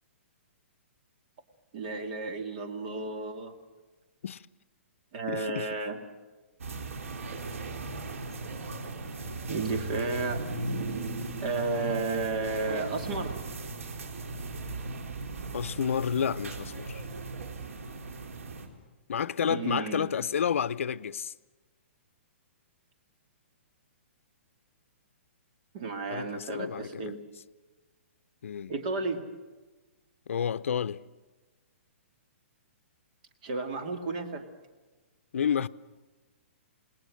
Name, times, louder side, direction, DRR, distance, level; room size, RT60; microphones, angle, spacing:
voice 1, 1.7-3.5 5.1-6.0 9.5-10.4 11.4-13.4 19.4-20.2 25.7-27.2 28.7-29.2 33.4-34.4, right 3 dB, 35° right, 2.4 m, -32 dB
voice 2, 5.3-5.8 15.5-17.0 19.1-21.3 26.1-27.2 28.4-28.7 30.3-31.0 35.3-35.7, left 8 dB, 75° left, 0.7 m, -30 dB
sound 1, 6.6-18.7, right 3 dB, 85° right, 3.8 m, -37 dB
28.0 x 20.0 x 6.5 m
hypercardioid pair, 170°, 7 cm